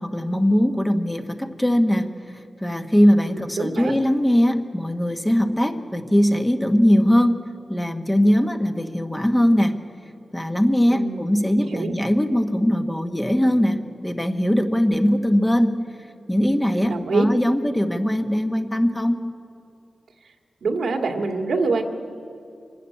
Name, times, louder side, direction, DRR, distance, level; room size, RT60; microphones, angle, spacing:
voice 1, 0.0-2.1 2.6-7.4 7.7-9.8 10.3-15.8 16.3-19.2, equal, 10° left, 6 dB, 1.1 m, -20 dB
voice 2, 3.3-3.9 10.9-11.9 16.7-17.3 20.6-21.8, right 4 dB, 85° right, 3 dB, 2.0 m, -25 dB
24.5 x 12.5 x 9.8 m, 2.5 s
wide cardioid pair, 110°, 0 cm